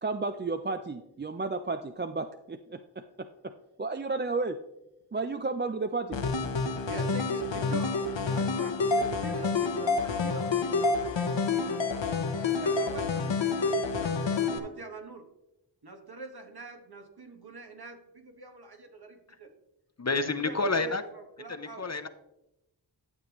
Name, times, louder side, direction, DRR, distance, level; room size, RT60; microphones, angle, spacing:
voice 1, 0.0-3.5 3.8-4.6 5.1-6.2, right 3 dB, 25° right, 8 dB, 0.4 m, -32 dB
sound 1, 6.1-14.6, left 4 dB, 75° left, 1.0 m, -28 dB
voice 2, 6.9-8.0 8.3-12.1 12.4-15.2 15.8-19.5 20.2-21.8, right 3 dB, 55° right, 4 dB, 1.5 m, -44 dB
voice 3, 20.0-21.1 21.5-22.1, left 3 dB, 35° left, 10 dB, 0.7 m, -29 dB
12.0 x 7.2 x 3.0 m, 0.90 s
wide cardioid pair, 45°, 45 cm